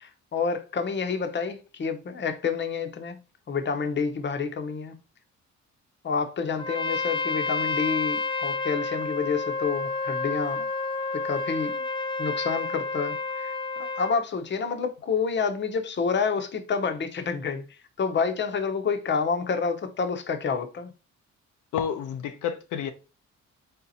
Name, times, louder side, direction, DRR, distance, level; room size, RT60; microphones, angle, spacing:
voice 1, 0.0-3.2 3.5-5.0 6.0-10.7 11.1-11.8 12.2-20.9, left 5 dB, 35° left, 0.8 m, -29 dB
Trumpet, 6.6-14.2, left 3 dB, 15° left, 0.5 m, -30 dB
voice 2, 21.7-22.9, left 8 dB, 80° left, 0.6 m, -30 dB
4.2 x 3.7 x 2.7 m
cardioid pair, 90°, 30 cm